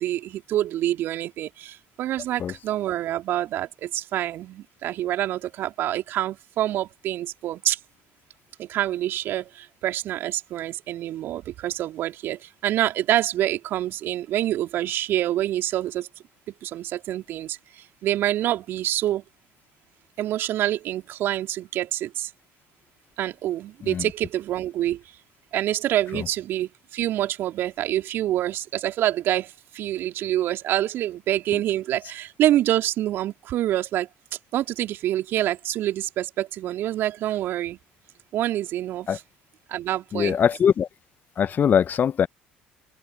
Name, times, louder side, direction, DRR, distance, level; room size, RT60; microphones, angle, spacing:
voice 1, 0.0-7.8 8.6-16.1 16.6-19.2 20.2-22.3 23.2-25.0 25.5-34.1 34.5-37.8 38.3-39.2 39.7-40.4, right 13 dB, 55° right, 3.3 m, -26 dB
voice 2, 40.1-40.9 41.4-42.3, left 8 dB, 40° left, 1.2 m, -21 dB
open air
figure-of-eight pair, 60°, 5 cm